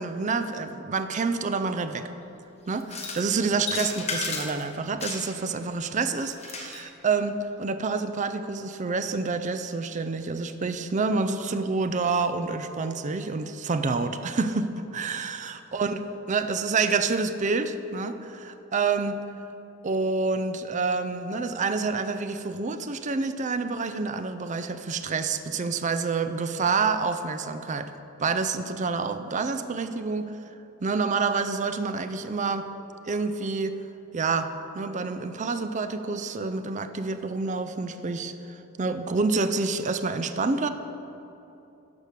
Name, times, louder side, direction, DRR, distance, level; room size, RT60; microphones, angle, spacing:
voice 1, 0.0-2.1 2.7-19.2 19.8-27.9 28.2-30.3 30.8-32.7 33.1-33.8 34.1-40.7, right 4 dB, 35° right, 10 dB, 0.5 m, -28 dB
sound 1, 2.8-3.3 3.6-4.6 5.0-5.5 6.2-6.8, left 4 dB, 30° left, 1.2 m, -33 dB
12.0 x 4.8 x 6.6 m, 2.9 s
head